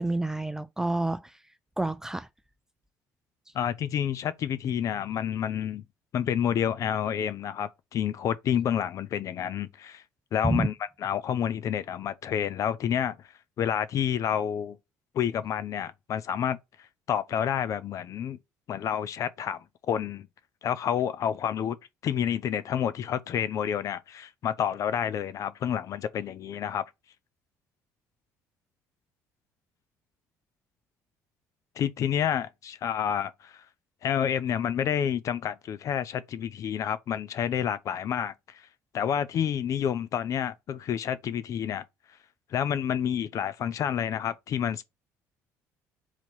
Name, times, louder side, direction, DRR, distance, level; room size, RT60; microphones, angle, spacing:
voice 1, 0.0-1.4 1.8-2.3 10.4-10.7, right 2 dB, 10° right, 0.4 m, -28 dB
voice 2, 3.5-5.8 6.1-10.0 10.3-10.7 11.0-13.2 13.6-14.8 15.1-16.6 17.1-18.4 18.7-20.3 20.6-21.8 22.0-26.8 31.8-33.6 34.0-38.6 38.9-41.8 42.5-44.8, left 9 dB, 55° left, 0.5 m, -29 dB
4.0 x 3.0 x 4.4 m
supercardioid pair, 85°, 7 cm